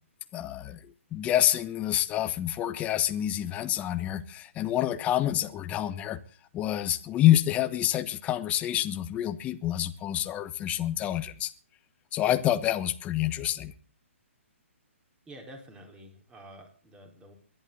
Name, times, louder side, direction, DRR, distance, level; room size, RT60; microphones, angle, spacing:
voice 1, 0.3-6.2 6.5-11.5 12.1-13.7, left 12 dB, 20° left, 1.2 m, -27 dB
voice 2, 15.3-17.3, right 1 dB, 10° right, 4.3 m, -48 dB
22.5 x 11.5 x 4.0 m
hypercardioid pair, 135°, 7 cm